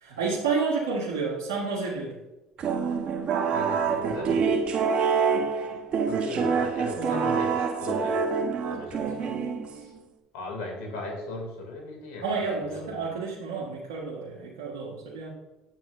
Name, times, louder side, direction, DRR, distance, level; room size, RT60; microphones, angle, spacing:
voice 1, 0.0-2.2 6.3-6.4 7.0-7.4 9.0-9.2 12.2-15.3, right 4 dB, 90° right, -4 dB, 1.3 m, -30 dB
sound 1, 2.6-10.0, right 5 dB, 50° right, 1.1 m, -26 dB
voice 2, 3.5-4.5 6.1-8.3 8.6-9.3 9.7-9.9 10.3-12.3 12.6-13.0, left 2 dB, 80° left, 1 dB, 2.6 m, -37 dB
9.4 x 7.5 x 2.6 m, 1.0 s
hypercardioid pair, 75°, 2 cm